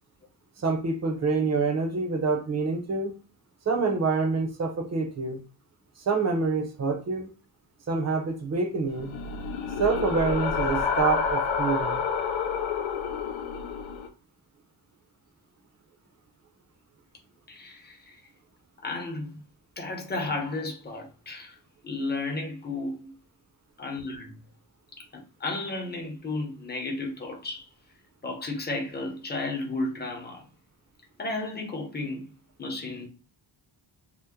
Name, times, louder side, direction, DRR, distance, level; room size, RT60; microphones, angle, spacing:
voice 1, 0.6-3.1 3.7-5.4 6.1-7.3 7.9-9.1 9.8-12.0, right 4 dB, 35° right, 0.6 m, -26 dB
sound 1, 8.9-14.1, left 5 dB, 70° left, 0.6 m, -29 dB
voice 2, 17.5-18.2 18.8-19.4 19.8-21.6 21.8-23.1 23.8-24.4 25.0-27.7 28.2-30.4 31.2-32.3 32.6-33.1, left 2 dB, 20° left, 0.7 m, -33 dB
2.9 x 2.1 x 3.5 m
wide cardioid pair, 155°, 47 cm